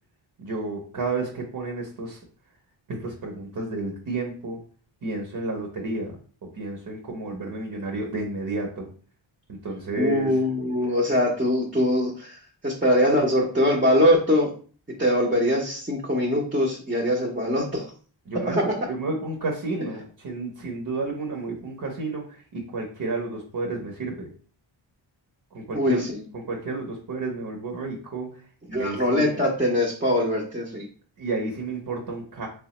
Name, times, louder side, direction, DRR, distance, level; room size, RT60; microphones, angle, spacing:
voice 1, 0.4-2.2 2.9-4.6 5.0-6.2 6.5-8.9 9.5-10.4 10.8-10.9 18.3-24.3 25.5-26.0 26.3-28.3 28.7-29.4 31.2-32.5, right 3 dB, 45° right, 1 dB, 0.9 m, -31 dB
voice 2, 10.0-14.5 15.0-17.9 18.4-18.6 25.7-26.2 28.7-30.9, left 1 dB, 15° right, -3 dB, 0.7 m, -22 dB
3.3 x 2.2 x 2.9 m, 0.43 s
cardioid pair, 50°, 48 cm